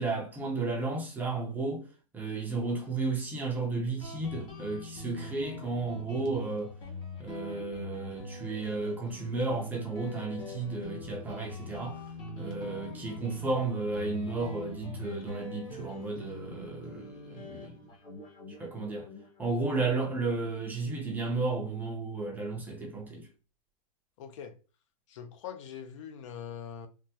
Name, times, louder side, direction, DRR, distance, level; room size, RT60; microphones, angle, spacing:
voice 1, 0.0-1.9 2.1-6.7 7.2-12.0 12.4-17.7 18.6-19.1 19.4-23.3, right 3 dB, 10° right, 0.5 m, -33 dB
Guitar, 4.0-21.2, left 1 dB, 25° left, 0.7 m, -43 dB
voice 2, 24.2-24.5 25.1-26.9, left 8 dB, 55° left, 0.5 m, -42 dB
3.4 x 2.1 x 2.8 m
supercardioid pair, 155°, 19 cm